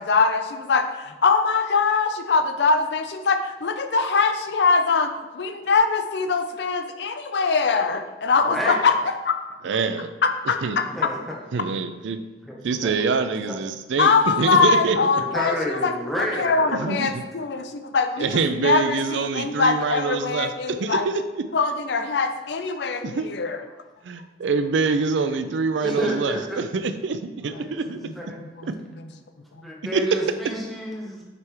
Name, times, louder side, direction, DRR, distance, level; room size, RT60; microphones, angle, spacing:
voice 1, 0.0-8.9 9.2-9.4 10.2-10.8 14.0-21.1 21.5-23.6 28.0-28.7, left 4 dB, 70° left, 8 dB, 0.5 m, -22 dB
voice 2, 8.5-8.9 10.8-11.2 12.4-13.2 15.2-16.9 25.8-26.6 27.5-27.8 28.1-28.4 29.6-31.2, equal, ahead, -3 dB, 1.0 m, -30 dB
voice 3, 9.6-10.1 10.6-10.8 11.5-12.2 12.6-15.0 16.8-17.2 18.2-21.1 23.0-23.3 24.0-28.0 28.7-28.8 29.9-30.0, right 4 dB, 85° right, 10 dB, 0.4 m, -25 dB
6.7 x 3.4 x 4.6 m, 1.1 s
head